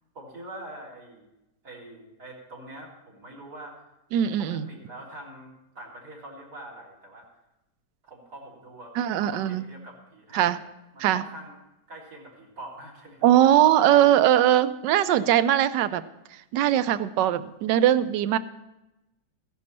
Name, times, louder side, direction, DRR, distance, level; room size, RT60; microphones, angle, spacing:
voice 1, 0.1-1.3 1.6-3.8 4.4-7.3 8.0-10.7 10.9-11.6 11.9-13.5, right 1 dB, 65° right, -1 dB, 4.1 m, -44 dB
voice 2, 4.1-4.7 9.0-9.6 10.3-10.6 11.0-11.2 13.2-16.0 16.5-18.4, right 11 dB, 80° right, 14 dB, 1.3 m, -20 dB
15.5 x 10.5 x 4.2 m, 0.94 s
omnidirectional pair, 1.9 m